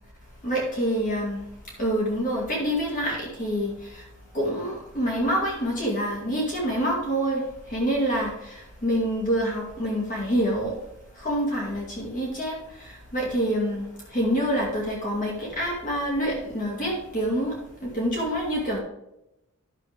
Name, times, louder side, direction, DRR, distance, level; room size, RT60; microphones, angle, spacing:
voice 1, 0.4-4.1 4.3-10.8 11.1-18.8, equal, 40° left, -3 dB, 2.1 m, -27 dB
11.0 x 6.9 x 3.5 m, 0.88 s
head